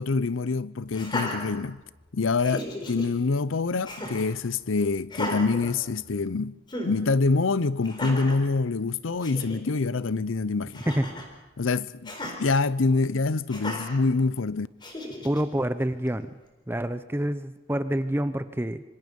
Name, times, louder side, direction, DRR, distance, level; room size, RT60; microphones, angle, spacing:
voice 1, 0.0-1.8 2.1-10.8 11.6-14.7, left 3 dB, 85° left, 0.7 m, -26 dB
Laughter, 0.9-2.0 2.4-3.1 3.8-4.3 5.1-6.3 6.7-6.9 7.8-8.4 8.9-9.0 9.2-9.6 10.7-11.3 12.0-12.4 13.5-14.0 14.8-15.4, left 1 dB, 25° left, 4.1 m, -35 dB
voice 2, 15.2-16.3 16.7-18.8, right 1 dB, 10° right, 0.7 m, -27 dB
26.5 x 25.5 x 5.4 m
head